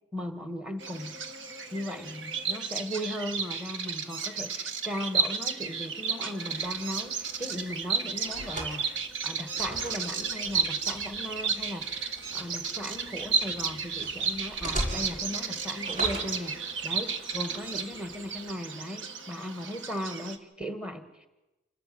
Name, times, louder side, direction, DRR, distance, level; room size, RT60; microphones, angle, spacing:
voice 1, 0.1-1.2 1.7-16.5 16.8-21.3, equal, 5° right, 8 dB, 1.5 m, -37 dB
Bird vocalization bird call bird song, 0.8-20.4, right 5 dB, 80° right, 1.4 m, -33 dB
sound 1, 6.6-18.5, right 1 dB, 40° right, 5.6 m, -42 dB
28.0 x 13.0 x 7.7 m, 1.0 s
head